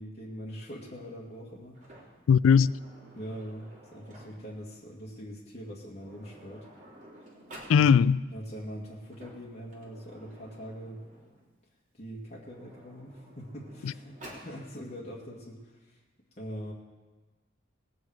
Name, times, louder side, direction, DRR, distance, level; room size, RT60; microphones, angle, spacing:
voice 1, 0.0-1.8 3.1-3.6 3.9-6.7 7.7-7.9 8.3-11.0 12.0-16.0 16.4-16.7, equal, 35° left, 2.1 m, -42 dB
Sliding door, 1.7-4.6 5.6-5.7 5.9-7.8 8.9-11.4 12.2-14.5, right 1 dB, 40° right, 3.1 m, -52 dB
voice 2, 2.3-2.7 7.7-8.2 13.8-13.9, left 6 dB, 90° left, 0.3 m, -20 dB
19.0 x 9.1 x 4.8 m
head